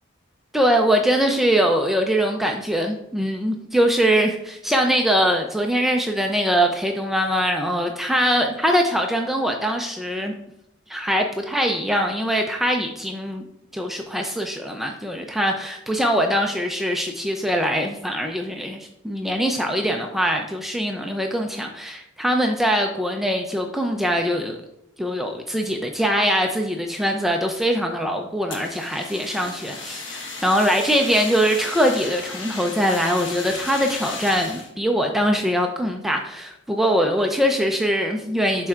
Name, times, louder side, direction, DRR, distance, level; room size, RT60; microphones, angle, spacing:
voice 1, 0.5-10.3 10.9-13.4 13.7-24.6 25.0-38.7, equal, ahead, 2 dB, 0.4 m, -22 dB
Fire, 28.5-34.7, left 3 dB, 70° left, 1.2 m, -35 dB
11.5 x 4.3 x 2.4 m, 0.79 s
head